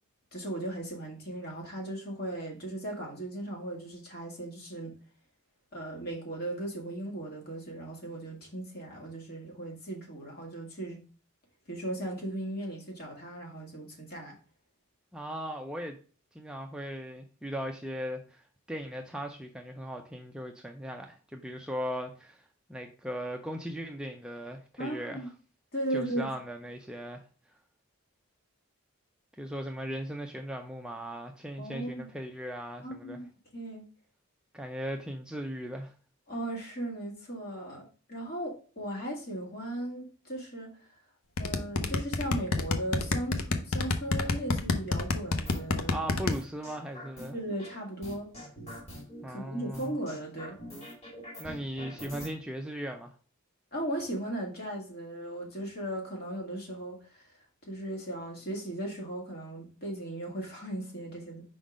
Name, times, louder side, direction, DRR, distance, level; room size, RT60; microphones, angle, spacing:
voice 1, 0.3-4.9 5.7-11.0 11.7-14.3 24.8-25.3 25.7-26.3 31.6-32.1 32.8-33.3 33.5-33.8 36.3-40.7 41.4-46.1 47.3-48.3 49.3-50.6 53.7-57.2 57.7-61.4, right 1 dB, 45° left, -1 dB, 1.9 m, -37 dB
voice 2, 15.1-16.0 16.3-25.3 25.9-27.2 29.4-33.2 34.5-35.9 45.9-47.4 49.2-50.0 51.4-53.1, equal, 5° right, 3 dB, 0.4 m, -38 dB
sound 1, 41.4-46.3, left 3 dB, 85° left, 0.7 m, -27 dB
sound 2, 45.5-45.8 46.3-47.7 48.0-49.2 49.7-52.3, equal, 30° left, 1.9 m, -44 dB
5.2 x 3.8 x 4.9 m, 0.38 s
head